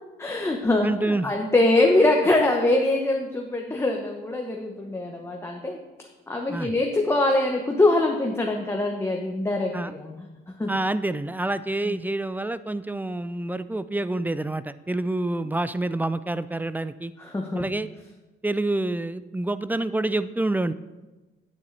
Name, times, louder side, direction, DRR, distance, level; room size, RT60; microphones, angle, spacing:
voice 1, 0.2-5.8 6.3-10.3 10.6-10.7 11.8-12.0 17.2-17.7, left 2 dB, 15° left, 1 dB, 0.9 m, -23 dB
voice 2, 0.8-1.3 6.5-6.7 9.7-9.9 10.7-17.1 17.5-17.9 18.4-20.7, right 2 dB, 10° right, 14 dB, 0.3 m, -27 dB
9.2 x 8.5 x 3.2 m, 1.2 s
cardioid pair, 90°, 20 cm